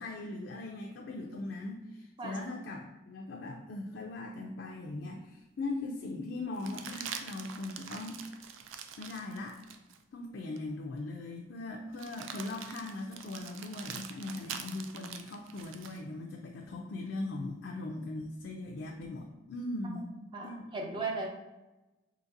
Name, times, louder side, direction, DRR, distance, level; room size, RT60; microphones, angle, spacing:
voice 1, 0.0-8.5 9.0-9.6 10.1-20.1 20.4-20.5 20.9-21.0, left 2 dB, 65° left, 1 dB, 0.4 m, -40 dB
sound 1, 5.0-5.1 6.5-10.0 10.6-10.7 11.9-16.0 18.2-19.1, right 7 dB, 85° right, 0.3 m, -45 dB
voice 2, 20.1-21.3, right 3 dB, 25° right, 1 dB, 0.5 m, -37 dB
3.9 x 2.8 x 2.5 m, 1.0 s
head